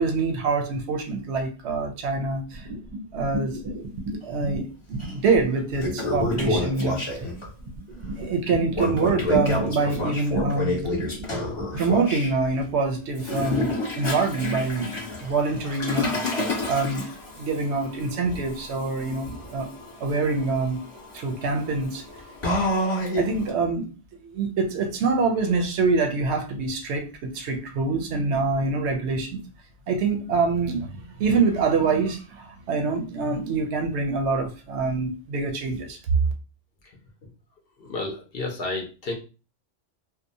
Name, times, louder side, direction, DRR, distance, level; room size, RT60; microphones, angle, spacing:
voice 1, 0.0-2.7 3.1-3.6 4.2-7.0 8.1-10.8 11.8-14.9 15.2-16.4 16.7-17.1 17.3-19.7 20.0-20.8 21.1-22.0 23.2-23.9 24.2-29.4 29.9-36.0, right 4 dB, 70° right, 0.8 m, -25 dB
sound 1, 2.5-4.6 4.9-11.8, right 2 dB, 45° right, 0.6 m, -33 dB
Toilet flush, 5.0-5.1 5.6-7.5 8.7-12.3 13.1-23.5, left 2 dB, 25° left, 1.0 m, -29 dB
voice 2, 37.8-39.1, left 2 dB, 60° left, 0.8 m, -31 dB
2.8 x 2.0 x 2.6 m
omnidirectional pair, 1.2 m